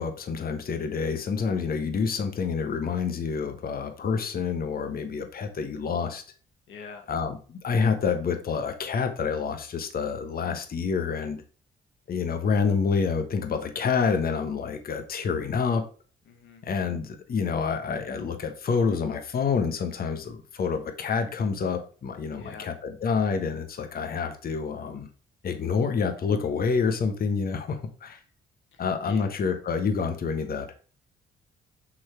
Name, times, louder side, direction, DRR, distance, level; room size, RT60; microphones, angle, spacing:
voice 1, 0.0-6.2 7.1-11.4 12.1-15.8 16.6-25.1 25.4-28.2 28.8-30.7, left 5 dB, 50° left, 6 dB, 1.1 m, -28 dB
voice 2, 6.7-7.1 16.3-16.6 22.3-22.7 28.7-29.3, left 5 dB, 70° left, 5 dB, 1.1 m, -45 dB
6.2 x 4.1 x 4.4 m, 0.40 s
cardioid pair, 90°, 20 cm